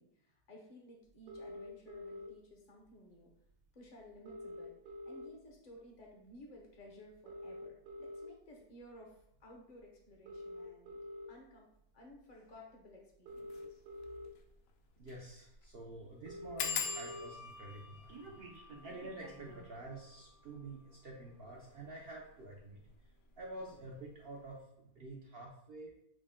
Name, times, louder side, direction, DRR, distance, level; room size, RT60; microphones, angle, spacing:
voice 1, 0.0-3.3 3.7-11.0 11.3-11.7 11.9-13.8, left 1 dB, 50° left, 0 dB, 0.5 m, -56 dB
sound 1, 1.3-2.3 3.5-3.6 3.8-3.9 4.1-5.6 6.0-6.3 7.1-8.3 9.0-9.2 10.1-11.3 12.5-12.6 13.1-14.3 15.0-15.1 15.3-15.4 15.7-15.8 16.0-17.3 17.6-19.8, equal, 90° right, 1.4 m, -48 dB
sound 2, 13.4-13.6 14.0-14.1 14.3-14.4 15.0-15.3 15.5-15.6 16.6-21.8 22.5-23.0 23.4-23.7 24.0-24.1, left 7 dB, 70° left, 0.8 m, -44 dB
voice 2, 15.0-22.8 23.4-25.9, right 2 dB, 70° right, -1 dB, 0.5 m, -49 dB
6.2 x 2.1 x 3.6 m, 0.77 s
omnidirectional pair, 1.7 m